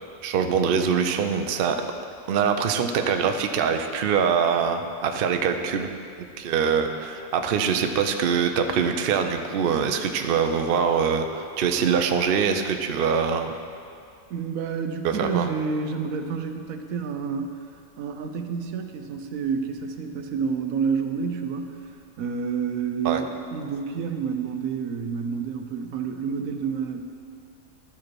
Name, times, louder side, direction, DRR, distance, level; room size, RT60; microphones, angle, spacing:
voice 1, 0.2-1.8 2.3-5.9 6.4-13.5 15.0-15.5 23.0-23.2, right 6 dB, 60° right, 6 dB, 0.6 m, -23 dB
voice 2, 14.3-17.5 18.0-21.8 22.2-27.0, right 6 dB, 80° right, 6 dB, 1.1 m, -29 dB
13.0 x 4.9 x 4.6 m, 2.4 s
omnidirectional pair, 1.4 m